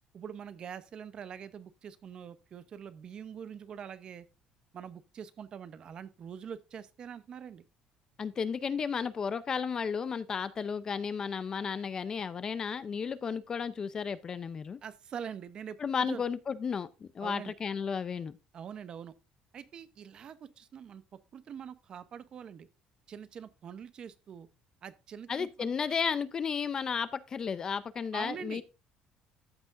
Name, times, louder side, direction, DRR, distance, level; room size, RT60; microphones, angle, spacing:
voice 1, 0.1-4.3 4.7-7.6 14.8-16.2 17.2-17.5 18.5-19.1 19.5-22.7 23.1-24.5 24.8-25.7 28.1-28.6, right 8 dB, 40° right, 0.7 m, -44 dB
voice 2, 8.2-14.8 15.8-18.3 25.3-28.6, left 6 dB, 30° left, 0.5 m, -33 dB
13.5 x 6.0 x 2.5 m
cardioid pair, 150°, 2 cm